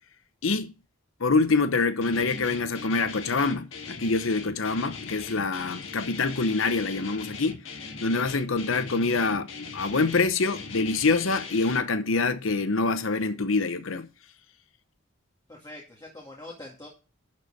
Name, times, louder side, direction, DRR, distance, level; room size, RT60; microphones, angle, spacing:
voice 1, 0.4-0.7 1.2-7.6 8.0-14.1, left 3 dB, 90° left, 0.9 m, -25 dB
Guitar, 2.0-11.8, left 4 dB, 70° left, 1.8 m, -40 dB
voice 2, 15.5-16.9, left 1 dB, 20° left, 2.1 m, -43 dB
11.5 x 4.4 x 6.4 m
head